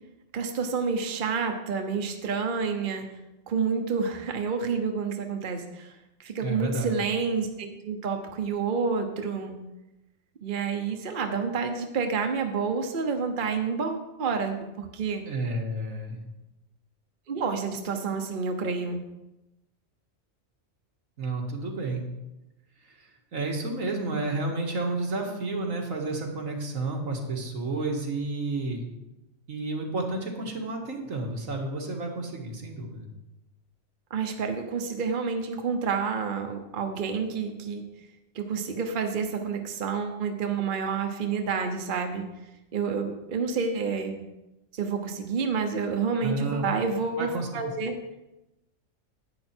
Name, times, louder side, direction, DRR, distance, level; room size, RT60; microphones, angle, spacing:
voice 1, 0.3-3.1 3.5-5.9 6.2-9.6 10.4-15.2 17.3-19.0 34.1-37.8 38.3-42.3 42.7-44.3 44.7-47.9, right 5 dB, 45° right, 5 dB, 1.1 m, -29 dB
voice 2, 6.4-6.9 15.3-16.2 21.2-22.0 22.9-28.8 29.5-33.1 46.2-46.7 47.2-47.5, right 2 dB, 85° right, 1 dB, 2.1 m, -31 dB
10.5 x 9.0 x 4.4 m, 0.97 s
omnidirectional pair, 1.4 m